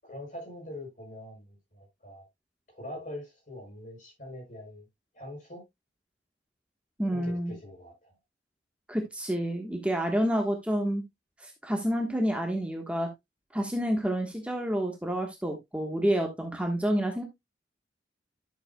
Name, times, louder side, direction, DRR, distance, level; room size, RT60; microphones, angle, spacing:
voice 1, 0.0-2.3 2.7-4.9 5.1-5.6 7.1-8.1, left 1 dB, 45° left, 7.1 m, -43 dB
voice 2, 7.0-7.5 8.9-11.0 11.4-13.1 13.5-17.2, equal, 5° right, 1.3 m, -29 dB
11.5 x 7.7 x 2.2 m
head